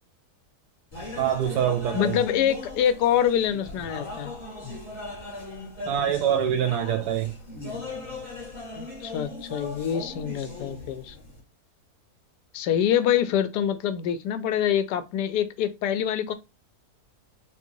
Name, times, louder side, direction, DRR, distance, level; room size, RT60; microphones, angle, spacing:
sound 1, 0.9-11.4, left 2 dB, 25° left, 1.8 m, -38 dB
voice 1, 1.2-2.2 5.9-7.3, right 9 dB, 85° right, 1.2 m, -25 dB
voice 2, 1.9-4.3 8.8-11.2 12.5-16.3, left 9 dB, 85° left, 1.2 m, -25 dB
3.8 x 2.6 x 2.7 m
omnidirectional pair, 1.7 m